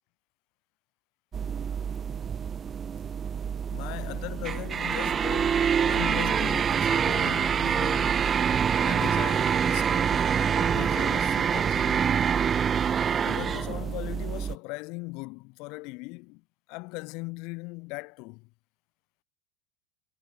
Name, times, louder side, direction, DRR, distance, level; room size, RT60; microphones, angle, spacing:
sound 1, 1.3-14.6, right 7 dB, 30° right, 0.7 m, -26 dB
voice 1, 3.7-8.4 8.8-12.2 13.2-16.4 16.7-18.5, left 27 dB, 55° left, 0.9 m, -39 dB
hypercardioid pair, 85°, 0 cm